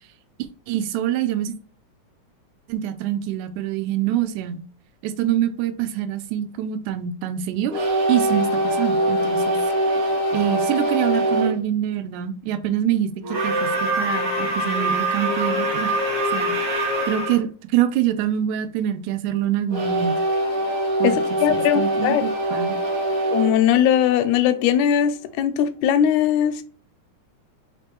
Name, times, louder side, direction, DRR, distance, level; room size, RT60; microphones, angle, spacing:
voice 1, 0.7-1.6 2.7-4.6 5.0-9.6 10.3-13.1 13.4-16.0 16.3-16.5 17.1-20.2 21.0-22.7, right 11 dB, 90° right, 2.0 m, -25 dB
sound 1, 7.7-11.6 13.2-17.4 19.7-24.6, right 1 dB, 60° right, 1.5 m, -23 dB
voice 2, 21.0-22.2 23.3-26.6, left 10 dB, 80° left, 1.9 m, -20 dB
4.7 x 3.3 x 3.0 m
omnidirectional pair, 3.4 m